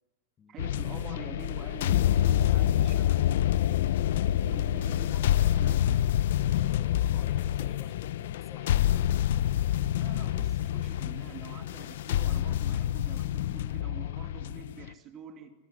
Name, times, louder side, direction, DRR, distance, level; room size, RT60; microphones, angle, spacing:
voice 1, 0.5-3.2 4.4-6.1 10.0-15.5, right 7 dB, 25° right, 8 dB, 2.5 m, -46 dB
sound 1, 0.6-14.9, left 12 dB, 70° left, 1.0 m, -27 dB
voice 2, 2.2-2.9 6.3-9.2, left 5 dB, 15° left, 7 dB, 2.0 m, -52 dB
26.5 x 22.0 x 10.0 m, 1.0 s
supercardioid pair, 170°, 0 cm